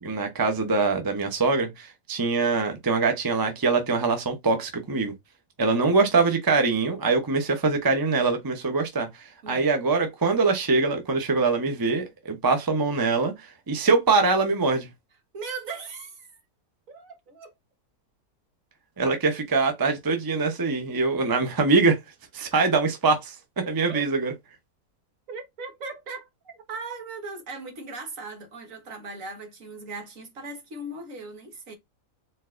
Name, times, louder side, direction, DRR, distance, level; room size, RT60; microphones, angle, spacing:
voice 1, 0.0-5.1 5.6-14.9 19.0-22.0 22.3-24.3, right 4 dB, 20° right, 0.7 m, -23 dB
voice 2, 15.3-16.4 16.9-17.5 23.9-24.0 25.3-31.8, right 3 dB, 60° right, 1.7 m, -38 dB
4.3 x 4.0 x 2.5 m
omnidirectional pair, 1.6 m